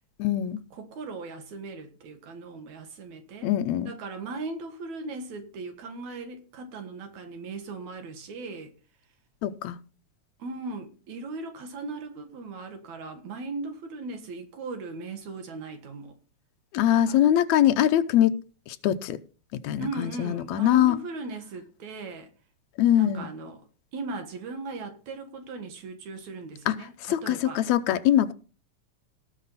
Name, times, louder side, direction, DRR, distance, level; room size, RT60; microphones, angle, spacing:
voice 1, 0.2-0.6 3.4-3.9 9.4-9.8 16.7-18.4 18.7-19.2 19.6-21.0 22.8-23.3 26.7-28.3, left 11 dB, 80° left, 2.0 m, -23 dB
voice 2, 0.7-3.5 3.8-8.7 10.4-16.2 16.9-17.2 19.8-22.3 22.9-23.6 23.9-27.6, right 3 dB, 75° right, 2.9 m, -38 dB
18.0 x 6.1 x 4.1 m
omnidirectional pair, 3.3 m